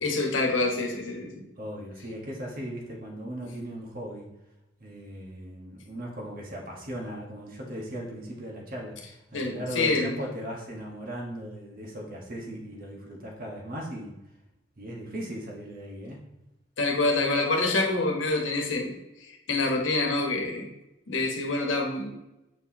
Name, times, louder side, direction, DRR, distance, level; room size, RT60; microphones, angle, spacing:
voice 1, 0.0-1.4 9.3-10.1 16.8-18.9 19.5-20.7 21.1-22.1, left 2 dB, 80° left, 1 dB, 1.3 m, -26 dB
voice 2, 1.6-4.3 4.8-14.1 14.8-16.2, equal, 50° right, -1 dB, 1.4 m, -38 dB
7.8 x 4.6 x 2.9 m, 0.94 s
head